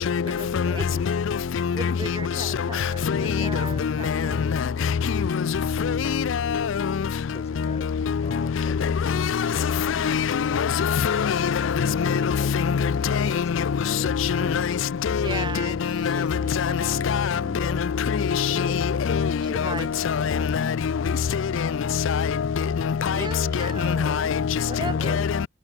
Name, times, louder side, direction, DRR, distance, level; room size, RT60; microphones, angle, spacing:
voice 1, 0.2-1.1 1.7-4.5 15.2-17.1 19.4-19.9 20.2-20.7 23.1-24.3 24.6-25.3, right 3 dB, 20° right, 1.2 m, -37 dB
voice 2, 1.6-1.9 3.1-3.5 3.8-3.9 5.8-6.0 6.3-6.7 8.8-9.5 9.8-13.6 14.0-14.6 15.1-15.4 16.0-16.3 16.5-16.7 17.1-17.4 18.1-19.3 20.0-20.7 21.6-21.7 22.1-22.3 22.9-23.2 23.8-24.4 25.1-25.2, left 6 dB, 65° left, 0.4 m, -24 dB
voice 3, 7.3-9.2 9.5-10.1 11.8-14.1 14.4-14.6 17.3-17.8 18.5-18.8 24.8-25.5, left 1 dB, 30° left, 3.1 m, -41 dB
head